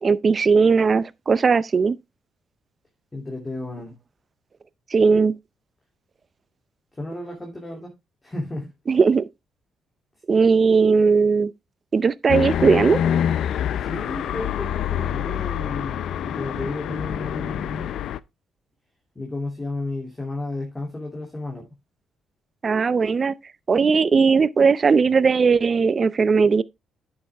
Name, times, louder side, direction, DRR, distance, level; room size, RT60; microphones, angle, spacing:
voice 1, 0.0-2.0 4.9-5.3 8.9-9.2 10.3-11.5 11.9-13.0 22.6-23.3 23.7-26.6, right 5 dB, 40° right, 0.5 m, -18 dB
voice 2, 3.1-3.9 6.9-7.9 8.2-8.7 13.8-17.9 19.1-21.8, left 2 dB, 20° left, 2.8 m, -33 dB
sound 1, 12.3-18.2, left 9 dB, 75° left, 0.5 m, -26 dB
9.7 x 6.8 x 3.4 m
cardioid pair, 90°, 0 cm